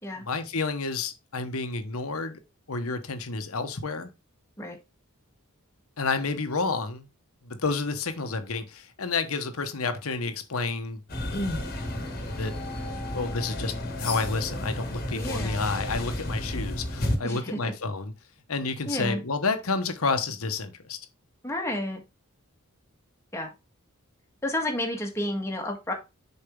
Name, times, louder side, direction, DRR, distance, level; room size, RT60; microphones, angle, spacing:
voice 1, 0.2-2.4 2.7-4.1 6.0-7.1 7.4-11.0 12.4-12.5 13.1-18.1 18.5-21.0, left 4 dB, 70° left, 1.1 m, -30 dB
sound 1, 11.1-17.2, left 1 dB, 45° left, 1.5 m, -32 dB
voice 2, 15.1-15.6 17.2-17.7 18.9-19.2 21.4-22.0 23.3-23.5 24.4-25.9, left 1 dB, 15° left, 1.5 m, -31 dB
6.9 x 4.5 x 3.6 m
head